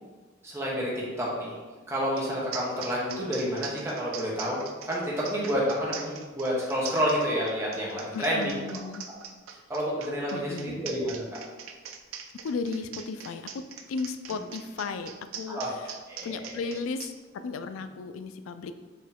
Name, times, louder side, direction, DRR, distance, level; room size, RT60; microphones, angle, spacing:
voice 1, 0.4-1.6 1.9-8.5 9.7-11.2 15.5-15.7 16.1-16.6, equal, 15° right, -5 dB, 0.9 m, -29 dB
sound 1, 2.2-2.3 2.5-17.1, right 7 dB, 80° right, 0.4 m, -41 dB
voice 2, 8.1-9.0 10.3-10.8 12.4-15.9 16.2-18.7, left 4 dB, 80° left, 10 dB, 0.3 m, -35 dB
4.5 x 2.9 x 3.5 m, 1.3 s
head